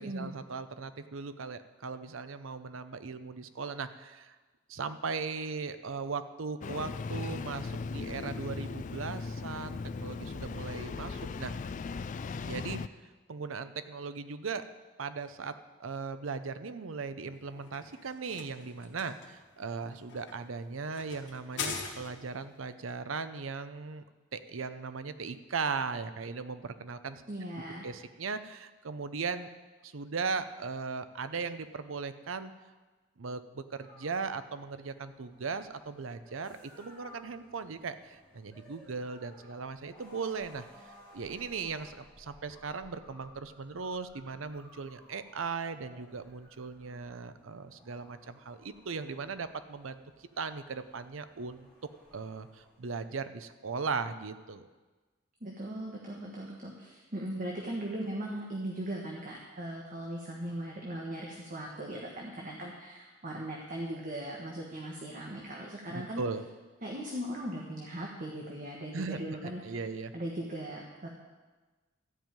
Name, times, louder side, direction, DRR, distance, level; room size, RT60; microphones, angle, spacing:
voice 1, 0.0-4.4 4.7-11.5 12.5-12.8 13.3-14.7 15.0-24.0 24.3-27.2 27.8-29.5 29.8-32.5 33.2-40.6 41.1-50.0 50.4-51.7 52.1-54.7 65.9-66.4 68.9-70.1, right 4 dB, 80° right, 11 dB, 0.7 m, -38 dB
Engine starting, 6.6-12.9, left 4 dB, 40° left, 0.3 m, -38 dB
sound 1, 17.3-22.4, left 5 dB, 60° left, 1.7 m, -42 dB
voice 2, 27.3-27.9 55.4-66.2 66.8-69.9 70.1-71.1, right 1 dB, 40° right, -1 dB, 1.4 m, -39 dB
sound 2, 33.7-53.1, left 1 dB, 5° left, 2.7 m, -58 dB
13.5 x 5.5 x 8.9 m, 1.3 s
head